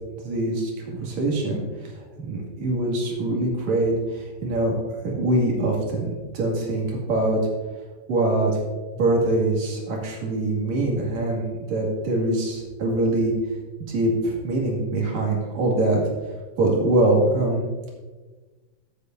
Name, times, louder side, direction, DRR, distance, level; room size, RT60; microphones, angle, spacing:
voice 1, 0.2-4.7 5.0-7.4 8.1-8.5 8.9-13.3 13.9-16.0 16.6-17.6, right 2 dB, 55° right, -2 dB, 3.2 m, -23 dB
15.5 x 8.3 x 2.6 m, 1.3 s
omnidirectional pair, 4.2 m